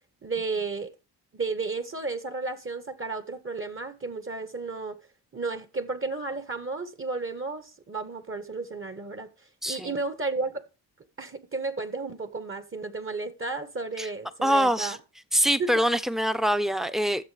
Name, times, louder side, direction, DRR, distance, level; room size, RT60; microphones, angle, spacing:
voice 1, 0.2-0.9 1.3-5.0 5.3-9.3 9.7-10.7 11.2-15.0 15.6-15.7, right 3 dB, 25° right, 1.5 m, -33 dB
voice 2, 9.6-9.9 14.0-14.1 14.4-15.0 15.3-17.2, equal, ahead, 1.0 m, -24 dB
14.5 x 7.3 x 3.5 m
hypercardioid pair, 45°, 45 cm